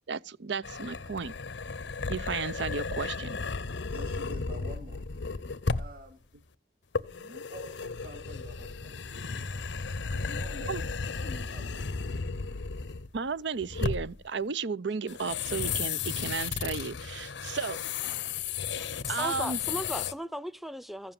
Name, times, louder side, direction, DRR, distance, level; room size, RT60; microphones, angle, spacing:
voice 1, 0.1-1.3 2.1-3.4 10.7-10.8 13.1-17.8 19.1-19.6, right 5 dB, 75° right, 0.7 m, -33 dB
sound 1, 0.6-6.0 6.9-13.3 13.6-14.2 15.1-20.1, left 5 dB, 75° left, 0.7 m, -34 dB
voice 2, 3.9-5.0 5.8-6.2 7.0-12.0, left 1 dB, 50° right, 3.3 m, -48 dB
voice 3, 18.8-21.1, equal, ahead, 0.6 m, -37 dB
15.0 x 7.3 x 7.5 m
head